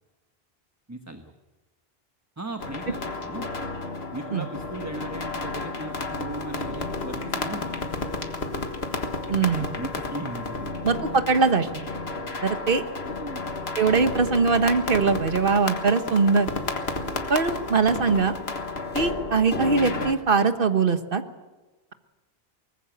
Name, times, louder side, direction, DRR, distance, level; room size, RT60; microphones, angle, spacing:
voice 1, 0.9-1.3 2.4-3.5 4.1-7.9 9.3-10.8 13.1-13.4, right 2 dB, 15° right, 6 dB, 1.2 m, -37 dB
sound 1, 2.6-20.1, left 3 dB, 75° left, 1.9 m, -32 dB
voice 2, 9.3-9.7 10.8-11.9 12.4-12.8 13.8-16.5 17.3-18.3 18.9-21.2, right 4 dB, 55° right, 9 dB, 1.5 m, -22 dB
22.5 x 19.5 x 8.0 m, 1.2 s
omnidirectional pair, 1.1 m